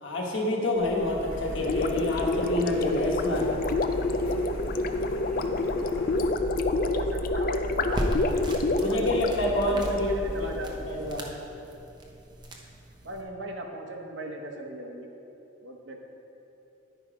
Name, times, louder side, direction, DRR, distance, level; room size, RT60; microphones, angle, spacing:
voice 1, 0.0-3.5 8.8-10.1 10.4-10.5 10.9-11.3, left 1 dB, 70° left, -1 dB, 1.3 m, -27 dB
Printer, 0.7-11.1, left 1 dB, 90° left, 1.1 m, -37 dB
Gurgling, 1.6-10.0, left 2 dB, 45° left, 0.3 m, -28 dB
voice 2, 6.8-8.1 8.7-9.1 9.5-10.7 13.0-15.1 15.6-16.0, right 1 dB, 65° right, 2 dB, 0.9 m, -38 dB
sound 1, 7.7-13.2, equal, 20° right, 0.7 m, -37 dB
10.5 x 5.0 x 4.9 m, 2.9 s
head